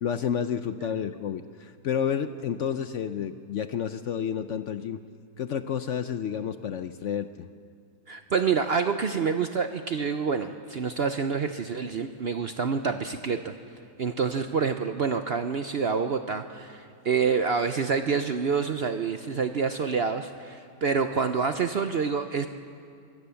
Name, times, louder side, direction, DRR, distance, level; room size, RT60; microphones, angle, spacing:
voice 1, 0.0-5.0 5.4-7.5, left 8 dB, 65° left, 11 dB, 0.8 m, -30 dB
voice 2, 8.1-13.5 14.0-22.5, right 5 dB, 55° right, 8 dB, 0.7 m, -27 dB
23.5 x 16.5 x 7.0 m, 2.4 s
omnidirectional pair, 1.7 m